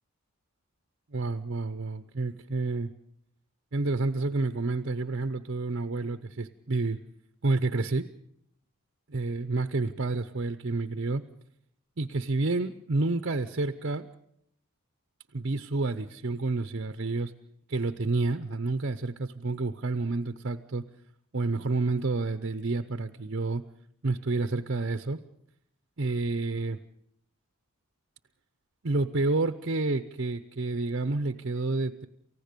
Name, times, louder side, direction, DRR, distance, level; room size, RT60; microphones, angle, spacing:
voice 1, 1.1-2.9 3.7-7.0 7.4-8.1 9.1-11.2 12.0-14.1 15.3-17.3 17.7-20.9 21.3-23.6 24.0-25.2 26.0-26.8 28.8-32.1, right 3 dB, 50° right, 10 dB, 0.8 m, -29 dB
29.0 x 15.5 x 6.8 m, 0.73 s
head